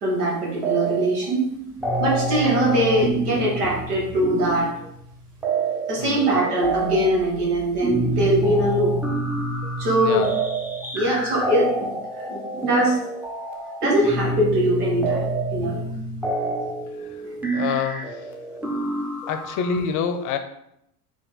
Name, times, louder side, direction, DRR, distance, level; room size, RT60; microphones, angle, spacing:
voice 1, 0.0-1.5 2.0-4.7 5.9-9.0 9.8-10.2 10.9-13.0 13.8-15.8 17.2-17.3, right 1 dB, 80° right, -3 dB, 1.7 m, -22 dB
sound 1, 0.6-1.2 1.5-19.8, right 2 dB, 5° right, 0.6 m, -28 dB
voice 2, 6.0-6.4 10.0-10.3 17.0-17.2 17.5-18.3 19.3-20.4, left 6 dB, 45° left, 8 dB, 0.6 m, -27 dB
4.5 x 2.9 x 4.0 m, 0.78 s
hypercardioid pair, 85°, 45 cm